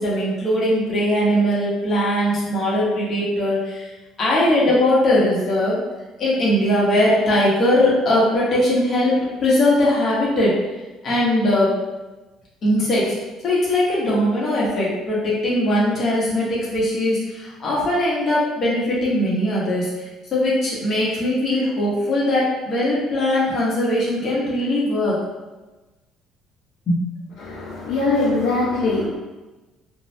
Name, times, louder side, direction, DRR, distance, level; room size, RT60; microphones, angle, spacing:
voice 1, 0.0-3.9 4.2-5.8 6.2-10.5 11.0-11.7 12.6-13.1 13.4-20.1 20.3-25.2 26.9-27.0, left 1 dB, 40° left, -6 dB, 1.0 m, -20 dB
voice 2, 27.4-29.1, left 3 dB, 80° left, -5 dB, 0.5 m, -21 dB
2.6 x 2.3 x 3.1 m, 1.2 s
cardioid pair, 130°, 0 cm